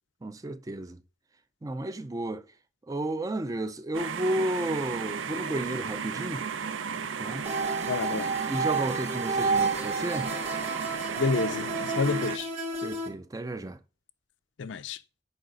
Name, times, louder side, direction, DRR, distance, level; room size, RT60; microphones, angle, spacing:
voice 1, 0.2-1.0 1.6-2.4 2.9-6.4 7.2-7.4 8.5-10.3 12.8-13.8, right 1 dB, 20° right, 0.3 m, -32 dB
sound 1, 3.9-12.4, right 6 dB, 80° right, 0.5 m, -34 dB
sound 2, 7.4-13.1, right 3 dB, 35° right, 1.5 m, -31 dB
voice 2, 7.9-8.4 11.2-12.5 14.6-15.0, left 4 dB, 70° left, 0.5 m, -29 dB
6.4 x 4.7 x 5.1 m
head